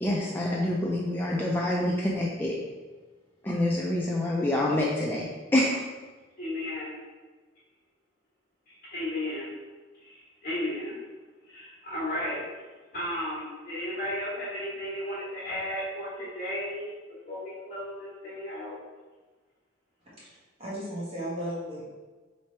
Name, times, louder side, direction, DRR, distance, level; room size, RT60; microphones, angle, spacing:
voice 1, 0.0-2.6 3.4-5.2 5.5-5.8, left 1 dB, 10° left, -4 dB, 0.4 m, -26 dB
voice 2, 6.4-6.9 8.7-9.5 10.0-11.0 11.4-12.4 12.9-16.9 17.3-18.8, left 1 dB, 45° left, -8 dB, 1.2 m, -34 dB
voice 3, 20.2-21.8, equal, 30° right, -8 dB, 1.3 m, -35 dB
3.4 x 3.2 x 4.2 m, 1.3 s
head